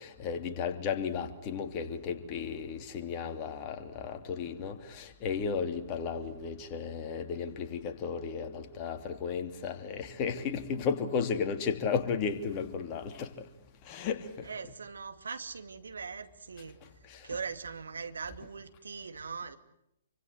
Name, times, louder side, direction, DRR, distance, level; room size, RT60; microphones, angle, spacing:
voice 1, 0.0-13.5 13.8-14.5 17.0-17.3, left 6 dB, 30° left, 7 dB, 3.1 m, -34 dB
voice 2, 14.4-19.6, right 5 dB, 70° right, 9 dB, 2.4 m, -41 dB
28.0 x 25.0 x 8.0 m, 0.79 s
figure-of-eight pair, 120°, 0 cm